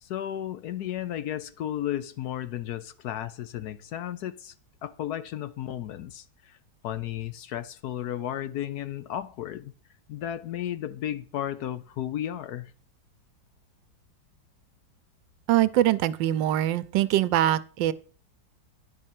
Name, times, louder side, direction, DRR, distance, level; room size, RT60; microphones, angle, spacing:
voice 1, 0.0-4.5 4.8-6.6 6.8-9.7 10.1-12.7, left 11 dB, 70° left, 1.1 m, -34 dB
voice 2, 15.5-17.9, right 13 dB, 90° right, 1.3 m, -23 dB
10.0 x 5.4 x 7.5 m
omnidirectional pair, 1.9 m